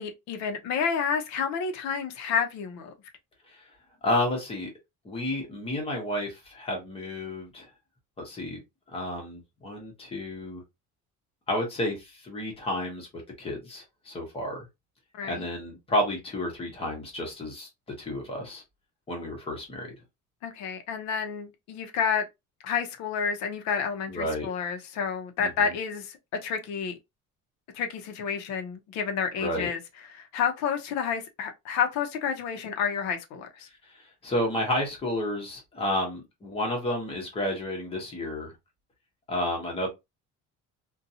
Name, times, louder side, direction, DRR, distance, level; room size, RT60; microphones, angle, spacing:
voice 1, 0.0-2.9 15.1-15.5 20.4-22.2 22.6-27.0 27.7-29.8 30.1-33.7, left 6 dB, 60° left, 0.7 m, -30 dB
voice 2, 4.0-4.7 5.0-7.7 8.2-8.6 8.9-10.6 11.5-13.1 13.4-14.6 15.2-17.7 18.0-18.6 19.1-19.9 24.1-24.5 25.4-25.7 29.4-29.7 33.9-38.5 39.3-39.9, left 1 dB, 20° left, 0.9 m, -31 dB
2.6 x 2.3 x 2.6 m
cardioid pair, 175°, 31 cm